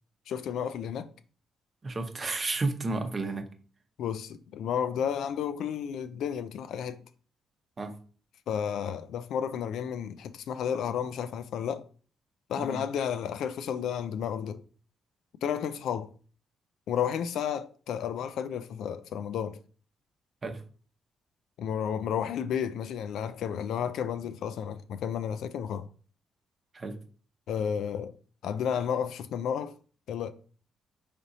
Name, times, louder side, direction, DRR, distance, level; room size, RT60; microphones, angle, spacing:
voice 1, 0.3-1.1 4.0-7.0 8.5-11.9 12.5-14.6 15.4-16.1 16.9-19.6 21.6-25.9 27.5-28.1 28.4-29.8 30.1-30.3, left 8 dB, 75° left, 0.3 m, -32 dB
voice 2, 1.8-3.5 7.8-7.9 12.6-12.8 20.4-20.6 26.7-27.0, right 3 dB, 35° right, 0.7 m, -32 dB
3.9 x 3.3 x 2.7 m
cardioid pair, 90°, 0 cm